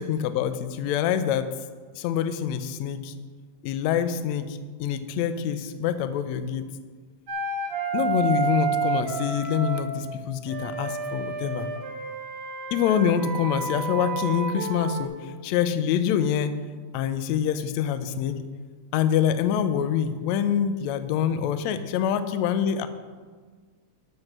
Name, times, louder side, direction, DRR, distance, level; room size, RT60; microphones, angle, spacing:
voice 1, 0.0-1.5 1.9-3.1 3.6-6.7 7.9-11.7 12.7-16.6 16.9-18.4 18.9-22.9, left 8 dB, 80° left, 11 dB, 1.8 m, -25 dB
Wind instrument woodwind instrument, 7.3-9.9 10.5-15.1, right 5 dB, 50° right, 2.0 m, -30 dB
12.0 x 6.6 x 6.0 m, 1.5 s
omnidirectional pair, 3.3 m